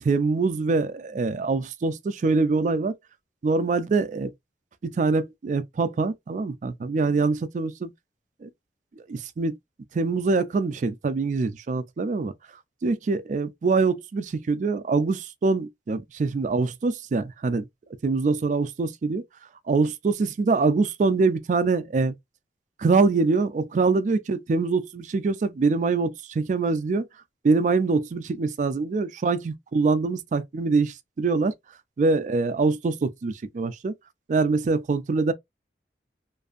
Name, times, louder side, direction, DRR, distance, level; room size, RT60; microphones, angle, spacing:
voice 1, 0.0-2.9 3.4-4.3 4.8-7.9 8.4-8.5 9.0-9.6 9.9-12.3 12.8-17.7 18.0-19.2 19.7-22.1 22.8-27.1 27.4-31.5 32.0-33.9 34.3-35.3, right 4 dB, 45° right, 0.3 m, -24 dB
2.6 x 2.4 x 2.4 m
head